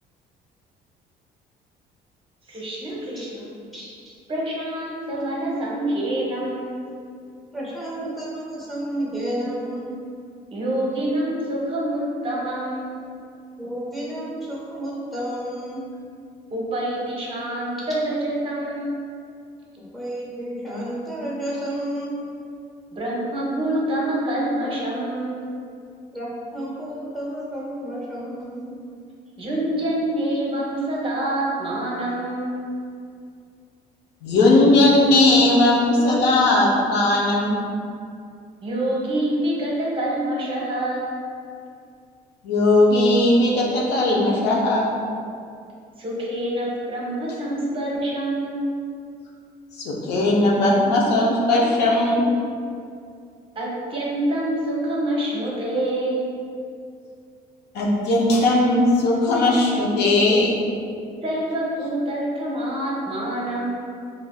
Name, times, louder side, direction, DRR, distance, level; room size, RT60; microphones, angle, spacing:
voice 1, 2.5-3.5 4.3-6.7 10.5-13.0 16.5-19.0 22.9-25.4 29.4-32.6 38.6-41.1 46.0-48.8 53.6-56.3 61.2-63.7, right 1 dB, 30° right, -4 dB, 0.7 m, -26 dB
voice 2, 7.5-10.0 13.6-15.8 19.9-22.2 26.1-28.7, right 1 dB, ahead, -6 dB, 0.8 m, -31 dB
voice 3, 34.2-37.6 42.4-44.9 49.8-52.2 57.7-60.6, left 2 dB, 80° left, -3 dB, 0.6 m, -18 dB
3.3 x 2.4 x 2.2 m, 2.3 s
cardioid pair, 110°, 17 cm